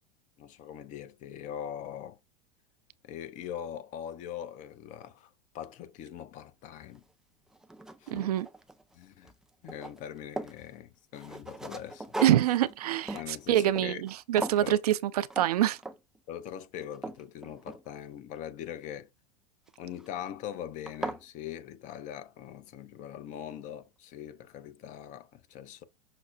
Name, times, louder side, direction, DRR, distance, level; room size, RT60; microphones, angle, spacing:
voice 1, 0.4-2.2 3.0-7.0 8.0-8.3 8.9-9.3 9.6-12.1 13.1-14.0 14.6-14.8 16.3-19.1 19.8-25.8, left 10 dB, 40° left, 0.6 m, -42 dB
sound 1, 6.9-7.0 7.5-9.0 9.2-10.6 11.1-14.1 14.4-14.7 15.3-15.5 15.8-16.2 16.6-18.2 19.7-20.1 20.5-20.6 20.9-21.2, right 2 dB, 5° right, 0.4 m, -39 dB
voice 2, 8.1-8.5 12.2-15.8, right 12 dB, 65° right, 0.4 m, -26 dB
5.8 x 2.1 x 2.6 m
figure-of-eight pair, 90°, 21 cm